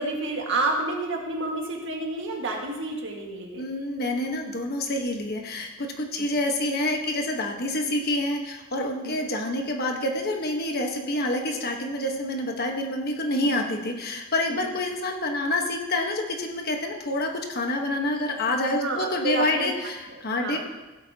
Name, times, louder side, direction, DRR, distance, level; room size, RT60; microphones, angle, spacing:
voice 1, 0.0-3.7 6.2-6.3 9.0-9.2 13.4-13.6 14.5-14.7 18.7-19.7 20.3-20.6, right 2 dB, 65° right, 0 dB, 1.8 m, -29 dB
voice 2, 3.6-20.6, left 1 dB, 50° left, 2 dB, 1.2 m, -27 dB
16.0 x 8.3 x 2.9 m, 1.1 s
head